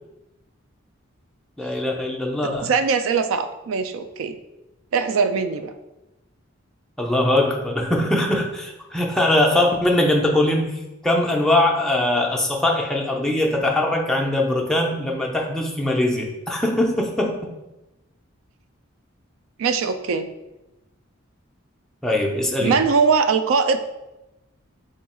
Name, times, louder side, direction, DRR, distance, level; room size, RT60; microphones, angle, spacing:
voice 1, 1.6-2.7 7.0-17.4 22.0-22.7, left 1 dB, 5° left, -1 dB, 0.4 m, -21 dB
voice 2, 2.6-4.4 4.9-5.7 19.6-20.3 22.6-23.8, right 5 dB, 75° right, 9 dB, 0.3 m, -21 dB
3.6 x 2.3 x 4.2 m, 0.97 s
head